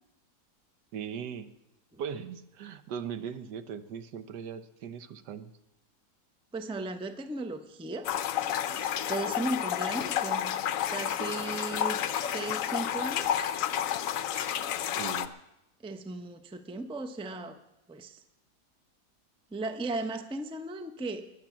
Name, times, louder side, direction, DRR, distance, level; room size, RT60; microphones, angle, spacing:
voice 1, 0.9-1.5 2.0-5.5 15.0-15.3, right 7 dB, 85° right, 11 dB, 1.4 m, -39 dB
voice 2, 6.5-8.1 8.7-10.5 10.9-13.3 15.8-17.6 17.9-18.2 19.5-21.3, right 2 dB, 5° right, 8 dB, 0.4 m, -36 dB
sound 1, 8.0-15.3, left 10 dB, 65° left, 0.9 m, -30 dB
21.0 x 7.4 x 7.2 m, 0.90 s
omnidirectional pair, 1.8 m